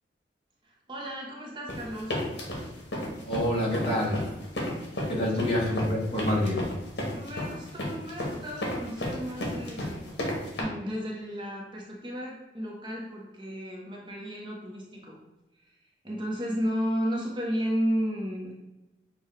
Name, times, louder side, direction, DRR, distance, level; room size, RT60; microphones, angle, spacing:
voice 1, 0.6-2.2 7.1-15.2 15.5-18.5, equal, 25° right, -3 dB, 0.7 m, -33 dB
sound 1, 1.7-10.6, left 1 dB, 75° left, 1.2 m, -32 dB
voice 2, 3.2-4.2 5.1-6.6, left 1 dB, 30° left, -5 dB, 1.3 m, -27 dB
6.5 x 2.3 x 3.1 m, 1.0 s
head